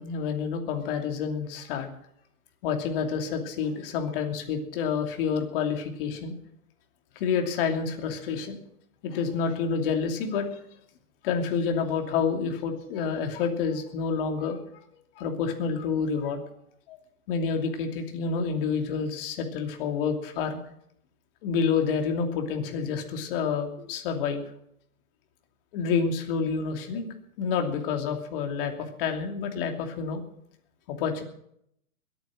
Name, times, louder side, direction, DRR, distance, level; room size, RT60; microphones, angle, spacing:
voice 1, 0.0-1.9 2.6-6.3 7.2-8.6 9.0-10.5 11.2-14.6 15.2-16.4 16.9-17.0 17.3-20.6 21.4-24.4 25.7-27.1 27.4-28.7 29.0-30.2 30.9-31.2, left 6 dB, 40° left, 4 dB, 2.8 m, -28 dB
21.5 x 9.2 x 6.4 m, 0.74 s
hypercardioid pair, 140°, 44 cm